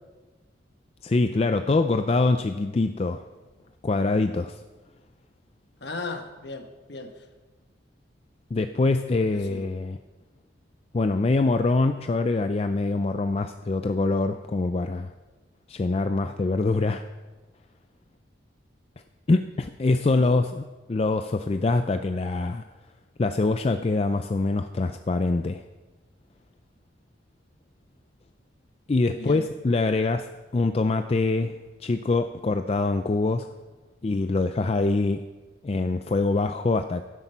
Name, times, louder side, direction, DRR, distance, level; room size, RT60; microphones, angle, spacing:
voice 1, 1.0-3.3 3.8-4.6 8.5-10.0 10.9-15.1 15.7-17.0 19.3-22.6 23.2-25.6 28.9-31.5 31.8-33.5 34.0-35.2 35.6-37.0, left 3 dB, 30° left, 8 dB, 0.4 m, -24 dB
voice 2, 5.8-7.3 9.3-9.6 20.1-20.4 29.1-29.5, left 3 dB, 60° left, 5 dB, 1.2 m, -37 dB
12.0 x 9.8 x 5.6 m, 1.2 s
head